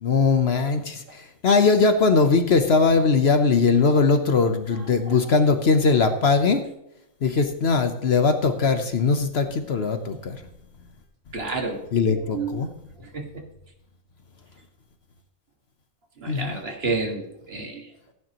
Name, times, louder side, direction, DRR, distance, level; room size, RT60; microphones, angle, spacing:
voice 1, 0.0-6.6 7.2-10.4 11.9-12.7 16.3-16.5, left 4 dB, 55° left, 8 dB, 1.0 m, -20 dB
voice 2, 4.8-5.2 11.3-11.8 12.3-12.6 13.0-13.3 16.2-17.9, right 3 dB, 50° right, 2 dB, 2.1 m, -30 dB
16.0 x 9.3 x 3.0 m, 0.83 s
omnidirectional pair, 1.4 m